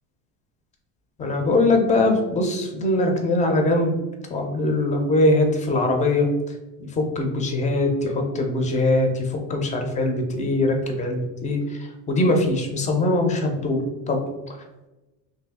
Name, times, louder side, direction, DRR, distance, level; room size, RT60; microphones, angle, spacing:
voice 1, 1.2-4.0 4.3-6.3 7.0-9.2 9.5-11.6 12.1-13.8 14.1-14.2, left 2 dB, 20° left, 3 dB, 0.4 m, -21 dB
2.7 x 2.6 x 3.5 m, 1.1 s
cardioid pair, 135°, 38 cm